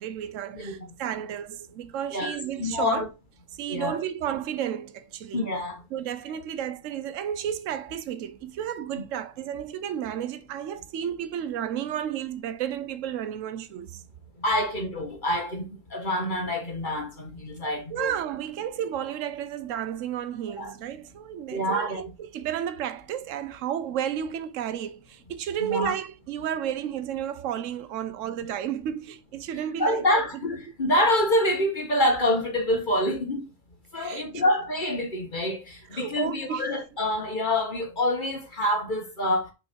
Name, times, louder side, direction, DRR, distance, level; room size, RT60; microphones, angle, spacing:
voice 1, 0.0-3.1 3.6-5.5 5.9-14.0 17.9-30.1 34.0-34.3 35.9-36.8, right 10 dB, 80° right, 1.0 m, -32 dB
voice 2, 0.5-0.9 2.1-3.1 3.7-4.0 5.3-5.8 8.9-9.0 14.4-18.1 20.6-20.7 21.5-22.0 25.7-25.9 29.8-33.5 33.9-39.5, left 1 dB, 40° left, 1.7 m, -26 dB
6.4 x 4.1 x 4.5 m
omnidirectional pair, 1.3 m